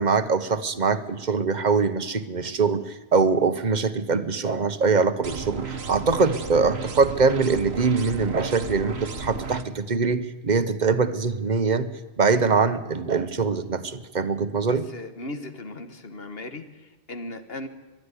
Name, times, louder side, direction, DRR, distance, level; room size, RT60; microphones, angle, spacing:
voice 1, 0.0-11.9 12.2-14.9, right 4 dB, 45° right, 12 dB, 1.2 m, -23 dB
sound 1, 5.2-9.6, right 4 dB, 70° right, 1.6 m, -34 dB
voice 2, 14.6-17.7, left 2 dB, 60° left, 9 dB, 1.8 m, -37 dB
22.0 x 12.0 x 9.8 m, 1.3 s
omnidirectional pair, 1.1 m